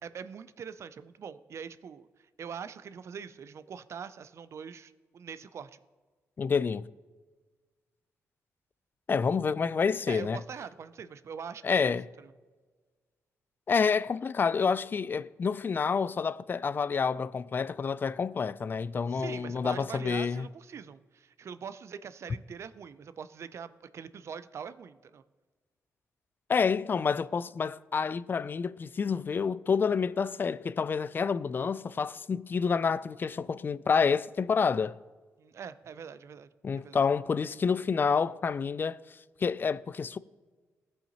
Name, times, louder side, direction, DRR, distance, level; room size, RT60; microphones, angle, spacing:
voice 1, 0.0-5.8 10.1-12.3 19.1-25.2 35.4-36.5 36.8-37.0, right 7 dB, 55° right, 0.4 m, -43 dB
voice 2, 6.4-6.9 9.1-10.4 11.6-12.0 13.7-20.5 26.5-35.0 36.6-39.0 39.4-40.2, left 5 dB, 35° left, 0.3 m, -28 dB
16.0 x 5.6 x 2.9 m
cardioid pair, 75°, 6 cm